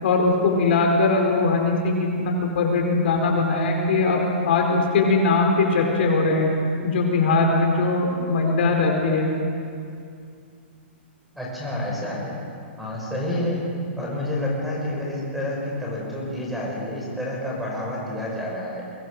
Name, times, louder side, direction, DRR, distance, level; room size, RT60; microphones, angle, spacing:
voice 1, 0.0-6.5 6.8-9.3, left 3 dB, 60° left, 1 dB, 4.4 m, -20 dB
voice 2, 11.3-12.3 12.8-13.6 14.0-18.8, left 1 dB, ahead, -4 dB, 6.1 m, -29 dB
23.5 x 21.5 x 6.6 m, 2.4 s
hypercardioid pair, 155°, 7 cm